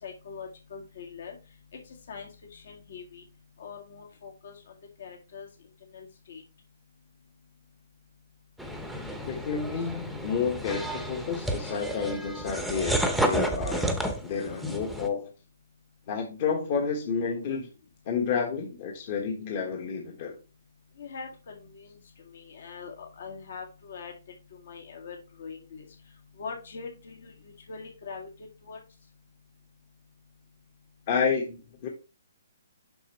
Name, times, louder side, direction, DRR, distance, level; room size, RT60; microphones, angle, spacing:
voice 1, 0.0-1.4 1.9-3.2 3.6-5.5 5.9-6.4 21.0-24.1 24.5-25.9 26.4-28.3 28.6-28.8, left 5 dB, 65° left, 1 dB, 2.0 m, -43 dB
sound 1, 8.6-15.1, right 1 dB, ahead, 0.8 m, -31 dB
voice 2, 9.1-15.3 16.1-17.7 18.0-20.4 31.1-31.9, left 6 dB, 40° left, 1 dB, 1.3 m, -30 dB
6.9 x 5.9 x 3.1 m, 0.32 s
hypercardioid pair, 155°, 0 cm